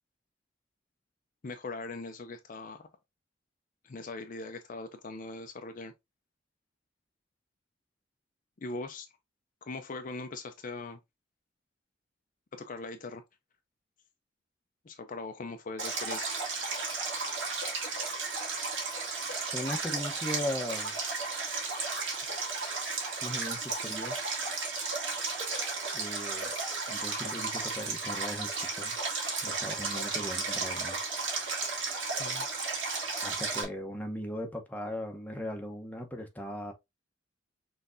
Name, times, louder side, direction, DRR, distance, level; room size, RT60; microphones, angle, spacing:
voice 1, 1.4-2.9 3.8-5.9 8.6-9.1 9.6-11.0 12.5-13.2 14.8-16.3 32.2-32.5, left 3 dB, 45° left, 0.5 m, -40 dB
Stream, 15.8-33.6, right 4 dB, 70° right, 2.1 m, -34 dB
voice 2, 19.5-21.0 23.2-24.2 25.9-26.5 26.9-29.0 29.4-31.0 33.2-36.7, left 1 dB, 10° left, 0.9 m, -38 dB
5.8 x 3.3 x 2.6 m
head